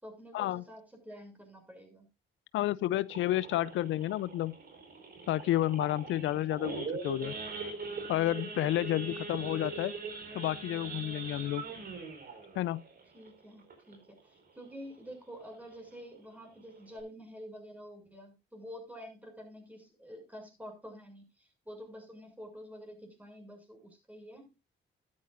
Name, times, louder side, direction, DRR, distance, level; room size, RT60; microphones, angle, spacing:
voice 1, 0.0-2.1 13.1-24.5, equal, 5° right, 6.6 m, -48 dB
voice 2, 2.5-4.6 5.3-7.3 8.1-9.9 10.3-11.6 12.6-12.8, left 14 dB, 75° left, 0.5 m, -30 dB
Idling / Accelerating revving vroom / Sawing, 3.1-14.2 14.6-14.8 15.0-15.1 15.6-15.9 16.4-16.5 16.7-17.0, right 4 dB, 50° right, 5.1 m, -42 dB
13.5 x 12.5 x 2.5 m
cardioid pair, 90°, 20 cm